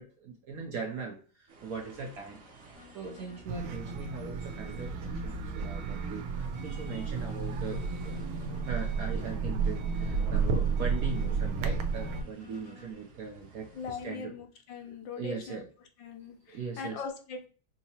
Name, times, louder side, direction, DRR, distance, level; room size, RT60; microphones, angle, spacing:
voice 1, 0.0-7.8 8.6-14.3 15.1-15.7 16.5-17.0, right 5 dB, 70° right, 2 dB, 0.8 m, -40 dB
sound 1, 1.5-14.0, right 3 dB, 45° right, 1.0 m, -51 dB
sound 2, 2.7-3.5 4.0-5.5 6.0-7.5 8.0-9.5 10.0-11.5 12.0-12.9, left 7 dB, 85° left, 2.5 m, -55 dB
sound 3, 3.5-12.2, right 5 dB, 90° right, 1.4 m, -32 dB
voice 2, 13.7-15.6 16.0-17.5, left 5 dB, 70° left, 4 dB, 1.4 m, -40 dB
5.5 x 2.8 x 2.8 m, 0.39 s
omnidirectional pair, 2.2 m